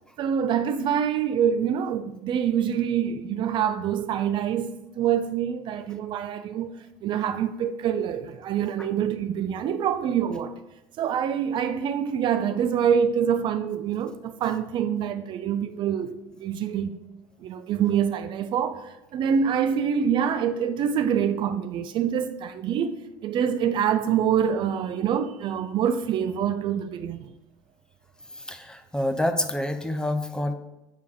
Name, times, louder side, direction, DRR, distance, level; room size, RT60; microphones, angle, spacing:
voice 1, 0.2-6.7 7.0-10.5 11.0-17.0 17.4-23.0 23.2-27.4, right 8 dB, 50° right, 0.5 m, -25 dB
voice 2, 28.4-30.5, left 1 dB, 10° left, 0.8 m, -27 dB
8.4 x 3.4 x 5.0 m
hypercardioid pair, 80°, 10 cm